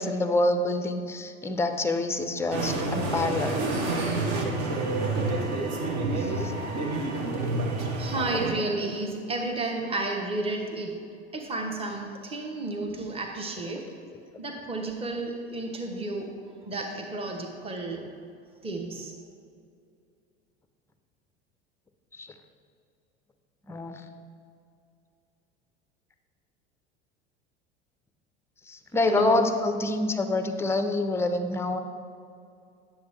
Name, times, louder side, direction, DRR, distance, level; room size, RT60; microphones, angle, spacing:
voice 1, 0.0-3.7 6.1-6.5 22.1-22.3 23.7-24.0 28.7-31.8, left 2 dB, 10° left, 8 dB, 0.4 m, -27 dB
sound 1, 2.5-8.5, right 2 dB, 55° right, 1.2 m, -28 dB
voice 2, 8.0-11.0 11.3-13.9 14.4-16.3 16.6-18.0 18.6-19.1 29.1-29.4, right 2 dB, 15° right, 1 dB, 1.0 m, -32 dB
9.4 x 7.3 x 3.2 m, 2.4 s
figure-of-eight pair, 75°, 33 cm